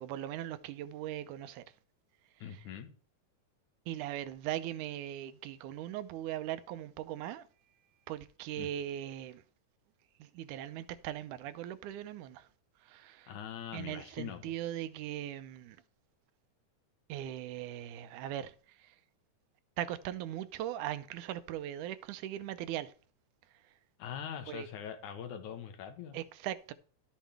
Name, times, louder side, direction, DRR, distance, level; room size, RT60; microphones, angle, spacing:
voice 1, 0.0-1.6 3.9-7.4 8.1-9.4 10.2-12.5 12.9-13.3 13.7-15.8 17.1-18.5 19.8-22.9 24.5-24.7 26.1-26.7, right 12 dB, 80° right, 2.1 m, -39 dB
voice 2, 2.4-2.9 8.6-8.7 13.3-14.5 24.0-26.2, left 8 dB, 75° left, 2.7 m, -42 dB
12.0 x 7.3 x 3.4 m
omnidirectional pair, 3.6 m